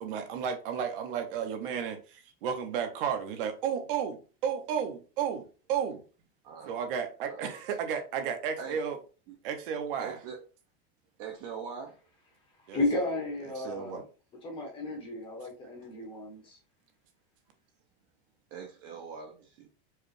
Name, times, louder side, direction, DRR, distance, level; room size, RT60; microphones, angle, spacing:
voice 1, 0.0-6.0 6.7-9.0 9.4-10.2 12.7-12.8 13.6-14.0, right 7 dB, 60° right, 0.8 m, -33 dB
voice 2, 6.4-6.8 7.2-7.4 8.6-8.8 9.3-9.4 10.0-10.4 11.2-11.9 18.5-19.7, right 6 dB, 35° right, 0.6 m, -42 dB
voice 3, 12.7-14.0 14.4-16.6, left 2 dB, 15° left, 0.8 m, -33 dB
4.7 x 2.3 x 3.2 m
supercardioid pair, 180°, 30 cm